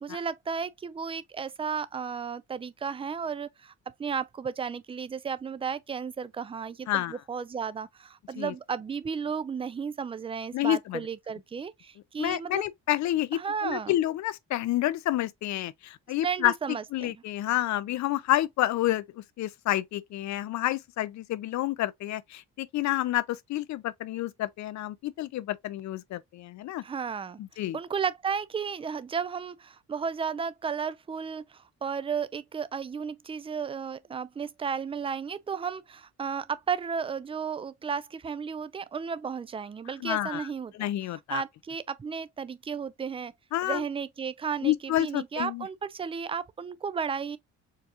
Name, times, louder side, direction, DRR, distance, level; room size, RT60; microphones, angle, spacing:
voice 1, 0.0-3.7 4.0-12.6 13.3-13.9 16.2-17.2 26.8-27.4 27.7-43.3 43.6-47.4, right 6 dB, 20° right, 0.4 m, -34 dB
voice 2, 6.9-7.2 8.4-8.5 10.5-11.0 12.2-16.5 16.9-26.8 27.4-27.8 40.0-40.5 40.8-41.4 43.5-43.8 44.6-45.7, left 14 dB, 65° left, 0.5 m, -29 dB
4.6 x 2.4 x 2.8 m
cardioid pair, 90°, 30 cm